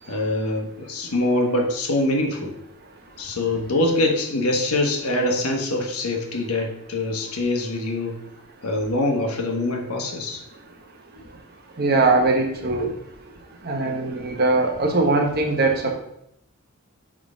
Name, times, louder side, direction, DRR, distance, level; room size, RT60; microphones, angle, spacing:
voice 1, 0.1-2.5 3.2-8.2 8.6-10.4, left 2 dB, 85° left, 1 dB, 1.3 m, -24 dB
voice 2, 11.8-12.9 13.6-16.0, right 3 dB, 45° right, 3 dB, 0.9 m, -21 dB
6.3 x 3.7 x 5.0 m, 0.76 s
head